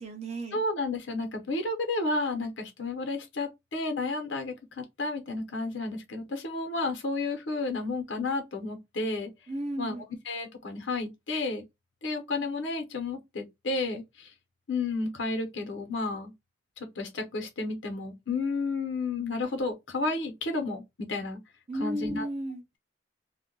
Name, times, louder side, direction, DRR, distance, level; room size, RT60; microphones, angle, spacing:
voice 1, 0.0-0.6 9.5-10.0 21.7-22.6, right 1 dB, 35° right, 0.7 m, -34 dB
voice 2, 0.5-9.3 9.8-11.6 12.0-14.3 14.7-16.3 17.0-21.4 21.8-22.3, left 3 dB, 90° left, 0.9 m, -32 dB
2.4 x 2.2 x 3.7 m
head